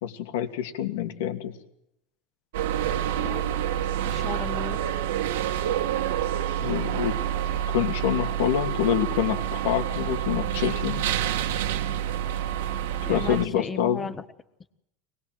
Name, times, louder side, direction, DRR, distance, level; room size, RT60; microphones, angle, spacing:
voice 1, 0.0-1.5 6.6-7.1 7.7-11.0 13.1-14.1, left 10 dB, 80° left, 6 dB, 2.8 m, -26 dB
sound 1, 2.5-13.4, right 11 dB, 90° right, 1.8 m, -28 dB
voice 2, 3.1-3.4 4.1-4.8 13.0-14.2, left 5 dB, 15° left, 11 dB, 1.3 m, -35 dB
24.5 x 19.5 x 7.8 m, 0.82 s
supercardioid pair, 155°, 0 cm